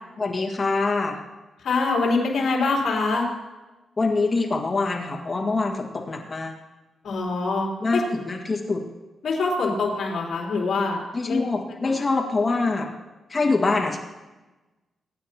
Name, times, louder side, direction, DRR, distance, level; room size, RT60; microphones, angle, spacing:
voice 1, 0.2-1.2 4.0-6.5 7.8-8.8 11.1-12.9 13.3-14.0, left 3 dB, 25° left, 1 dB, 1.8 m, -24 dB
voice 2, 1.6-3.3 7.0-8.0 9.2-11.4, left 3 dB, 60° left, -2 dB, 3.5 m, -24 dB
23.5 x 9.7 x 2.9 m, 1.1 s
wide cardioid pair, 145°, 0 cm